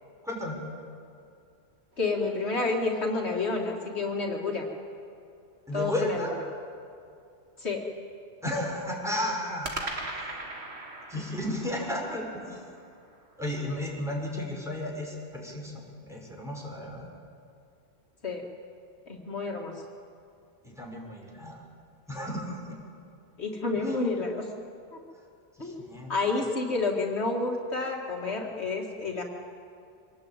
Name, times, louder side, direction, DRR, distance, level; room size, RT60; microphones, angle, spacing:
voice 1, 0.2-0.6 5.7-6.4 8.4-9.9 11.1-12.6 13.4-17.1 20.6-21.6 22.1-22.8 23.8-24.0 25.6-26.1, left 1 dB, 5° right, -2 dB, 5.4 m, -33 dB
sound 1, 1.9-3.8 9.6-13.9, right 2 dB, 70° right, 2.5 m, -41 dB
voice 2, 2.0-4.7 5.7-6.2 7.6-7.8 18.2-18.4 19.1-19.8 23.4-24.5 25.6-29.2, left 3 dB, 70° left, 0 dB, 2.5 m, -29 dB
25.0 x 19.5 x 8.9 m, 2.5 s
omnidirectional pair, 1.1 m